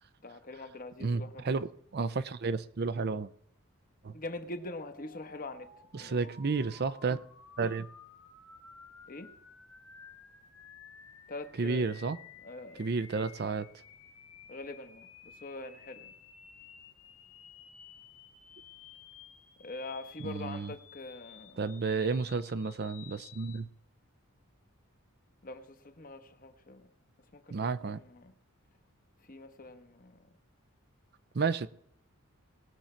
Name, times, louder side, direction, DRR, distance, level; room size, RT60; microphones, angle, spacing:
voice 1, 0.2-1.6 4.1-6.2 9.1-9.3 11.3-11.9 12.4-12.9 14.5-16.1 19.6-21.6 25.4-26.9 27.3-28.3 29.2-30.3, left 2 dB, 40° left, 1.1 m, -44 dB
voice 2, 1.0-1.7 1.9-3.3 4.0-4.2 5.9-7.2 7.6-7.9 11.6-12.2 12.8-13.7 20.2-20.7 21.6-23.7 27.5-28.0 31.3-31.7, right 4 dB, 50° right, 0.5 m, -31 dB
sound 1, 4.6-23.6, left 6 dB, 85° left, 1.6 m, -54 dB
19.5 x 7.1 x 4.4 m
head